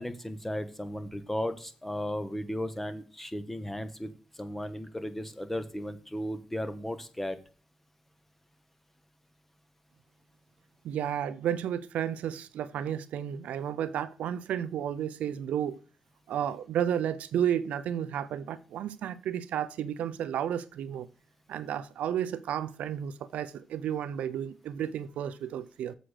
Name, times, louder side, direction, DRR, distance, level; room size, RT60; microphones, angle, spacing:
voice 1, 0.0-7.4, equal, 10° left, 1.2 m, -35 dB
voice 2, 10.8-15.8 16.3-21.1 21.5-25.9, right 9 dB, 80° right, 0.5 m, -32 dB
7.7 x 5.0 x 6.4 m
cardioid pair, 80°, 2 cm